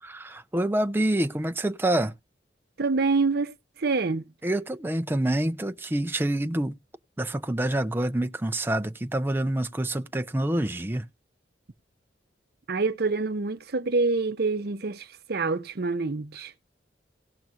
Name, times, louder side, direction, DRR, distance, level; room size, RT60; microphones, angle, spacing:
voice 1, 0.0-2.1 4.4-6.8 7.2-11.1, right 1 dB, 10° right, 0.5 m, -27 dB
voice 2, 2.8-3.5 3.8-4.3 12.7-16.5, right 3 dB, 60° right, 0.7 m, -26 dB
18.0 x 6.0 x 2.6 m
head